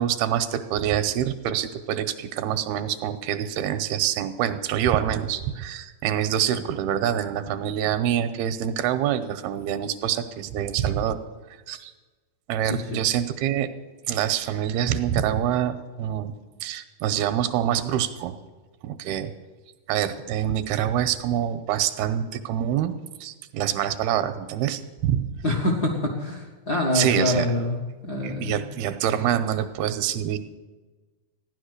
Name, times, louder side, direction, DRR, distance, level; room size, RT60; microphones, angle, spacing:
voice 1, 0.0-11.2 11.7-11.9 12.5-13.7 14.1-16.3 16.6-18.4 18.8-19.3 19.9-22.9 23.2-25.3 26.9-27.5 28.2-30.4, right 10 dB, 85° right, 10 dB, 2.6 m, -26 dB
voice 2, 12.7-13.0 25.4-27.8 28.0-28.6, left 1 dB, 55° left, 0 dB, 1.0 m, -25 dB
15.5 x 10.5 x 6.6 m, 1.3 s
omnidirectional pair, 4.5 m